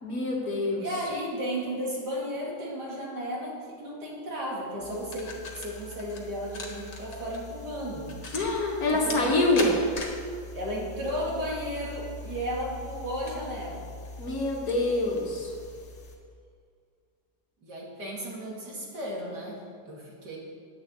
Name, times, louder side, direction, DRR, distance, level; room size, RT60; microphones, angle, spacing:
voice 1, 0.0-0.8 8.3-9.7 14.2-15.5, left 2 dB, 55° left, -1 dB, 2.1 m, -26 dB
voice 2, 0.8-8.1 8.9-9.9 10.5-13.9 17.6-20.4, equal, 65° right, -4 dB, 3.0 m, -34 dB
sound 1, 4.8-16.2, left 2 dB, 75° left, 2.2 m, -41 dB
10.5 x 7.0 x 8.2 m, 2.2 s
omnidirectional pair, 1.9 m